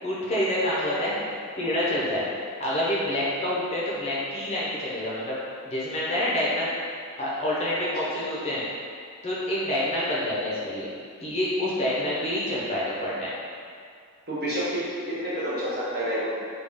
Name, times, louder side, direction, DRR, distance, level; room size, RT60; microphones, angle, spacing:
voice 1, 0.0-2.2 2.6-5.4 5.6-6.7 7.2-8.6 9.2-10.9 11.2-13.3, left 1 dB, 30° left, -7 dB, 0.6 m, -27 dB
voice 2, 14.3-16.5, equal, 45° right, -8 dB, 0.9 m, -29 dB
3.5 x 2.3 x 3.4 m, 2.3 s
head